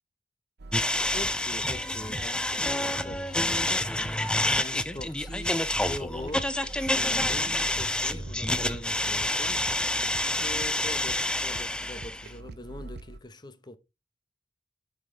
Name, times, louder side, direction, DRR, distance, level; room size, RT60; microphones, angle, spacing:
sound 1, 0.6-13.2, right 2 dB, 65° right, 0.6 m, -44 dB
sound 2, 0.7-12.3, left 1 dB, 5° left, 0.5 m, -28 dB
voice 1, 1.1-4.1 4.5-9.8 10.4-13.8, left 1 dB, 25° left, 0.9 m, -43 dB
8.6 x 6.0 x 3.3 m
head